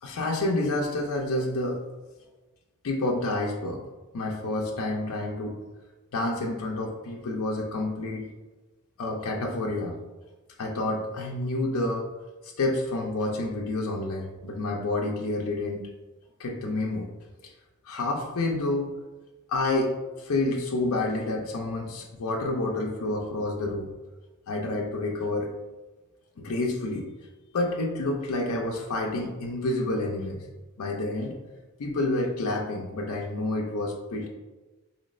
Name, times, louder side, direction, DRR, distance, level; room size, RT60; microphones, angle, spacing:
voice 1, 0.0-1.8 2.8-3.8 4.1-5.6 6.1-8.3 9.0-10.0 10.6-12.1 12.4-15.8 16.4-17.1 17.9-18.9 19.5-23.9 24.5-25.5 26.4-27.1 27.5-30.5 30.8-31.4 31.8-34.3, left 2 dB, 75° left, 0 dB, 0.5 m, -29 dB
4.3 x 3.1 x 2.4 m, 1.2 s
head